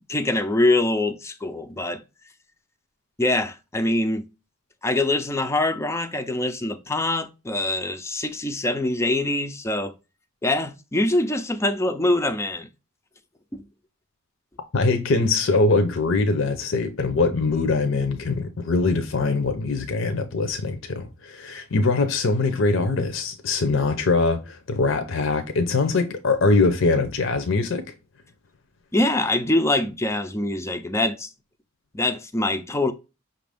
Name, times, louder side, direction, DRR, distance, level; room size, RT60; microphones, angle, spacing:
voice 1, 0.1-2.0 3.2-4.2 4.8-9.9 10.4-12.7 13.5-13.6 28.9-31.3 31.9-32.9, left 2 dB, 15° left, 0.4 m, -24 dB
voice 2, 14.7-27.8, left 3 dB, 60° left, 0.6 m, -22 dB
5.7 x 2.5 x 3.3 m
head